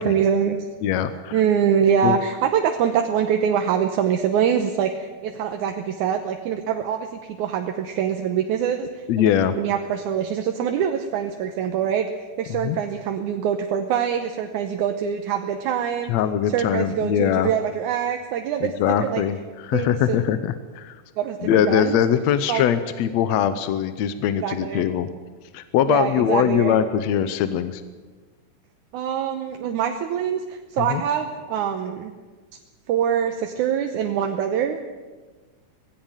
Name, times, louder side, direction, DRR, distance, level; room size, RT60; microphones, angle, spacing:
voice 1, 0.0-0.7 1.3-12.1 12.4-16.1 16.5-18.7 19.0-19.2 19.7-20.2 21.2-22.0 22.5-22.6 24.4-24.9 25.9-26.8 28.9-32.1 32.9-34.8, right 8 dB, 70° right, 5 dB, 2.2 m, -24 dB
voice 2, 0.8-1.4 2.0-2.2 9.1-9.5 12.5-12.8 16.1-17.5 18.6-21.0 21.4-25.1 25.5-27.8 30.8-31.0, left 9 dB, 70° left, 12 dB, 1.7 m, -22 dB
18.5 x 16.0 x 9.1 m, 1.3 s
omnidirectional pair, 3.9 m